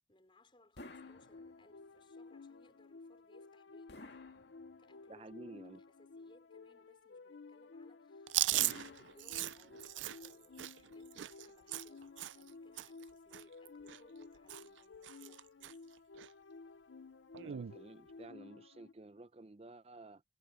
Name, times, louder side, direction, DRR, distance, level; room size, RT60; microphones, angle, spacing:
voice 1, 0.1-4.0 4.8-5.4 5.9-15.8, left 1 dB, 25° left, 5.0 m, -66 dB
sound 1, 0.8-18.9, left 4 dB, 85° left, 0.7 m, -55 dB
sound 2, 0.8-1.9 3.9-5.1 8.5-9.8, left 2 dB, 65° left, 2.0 m, -54 dB
voice 2, 5.1-5.8 17.3-20.2, right 2 dB, 35° right, 0.6 m, -53 dB
Chewing mastication, 8.3-12.5 12.8-13.0 13.3-14.2 14.5-14.8 15.0-15.7 16.2-16.3 17.3-17.8, right 15 dB, 80° right, 0.4 m, -38 dB
head